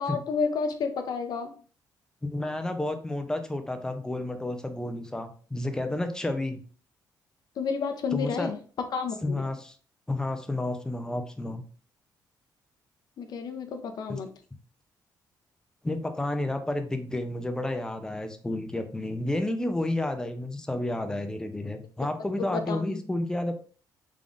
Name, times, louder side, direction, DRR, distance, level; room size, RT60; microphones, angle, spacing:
voice 1, 0.0-1.5 7.6-8.6 8.9-9.5 13.2-14.3 22.4-23.0, left 5 dB, 60° left, 7 dB, 0.6 m, -31 dB
voice 2, 2.2-6.6 8.1-8.5 9.2-9.8 10.1-11.6 14.1-14.2 15.8-23.5, left 1 dB, 10° left, 7 dB, 0.5 m, -31 dB
3.6 x 3.5 x 2.5 m, 0.42 s
cardioid pair, 115°, 8 cm